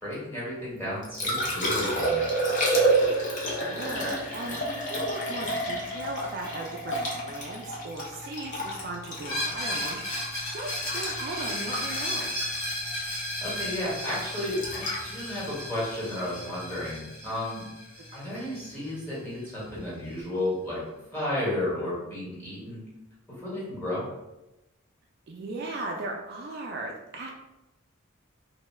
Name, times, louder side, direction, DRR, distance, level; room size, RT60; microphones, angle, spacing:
voice 1, 0.0-2.3 13.4-17.6 18.1-20.8 21.1-22.8 23.4-24.0, left 1 dB, 10° left, -8 dB, 1.2 m, -32 dB
Liquid, 0.8-16.9 19.7-19.8, right 1 dB, 35° left, 0.6 m, -30 dB
voice 2, 3.6-4.6 4.9-7.0 7.2-12.3 25.3-27.3, right 2 dB, 50° right, 1 dB, 0.3 m, -37 dB
Screech, 9.2-18.9, left 1 dB, 75° left, 1.1 m, -34 dB
2.6 x 2.2 x 3.1 m, 0.96 s
head